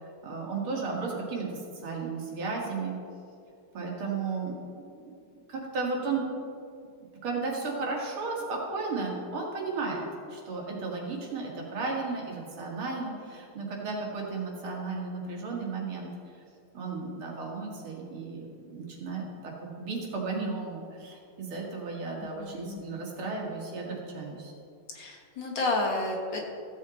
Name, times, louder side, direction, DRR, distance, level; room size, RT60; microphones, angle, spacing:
voice 1, 0.2-1.5 1.8-3.0 3.7-5.2 5.5-6.2 7.2-16.1 16.7-18.5 18.7-24.5, right 4 dB, 75° right, -2 dB, 2.8 m, -34 dB
voice 2, 22.2-22.8 24.9-26.5, left 2 dB, 60° left, 0 dB, 2.1 m, -31 dB
15.5 x 7.7 x 4.1 m, 2.4 s
omnidirectional pair, 2.4 m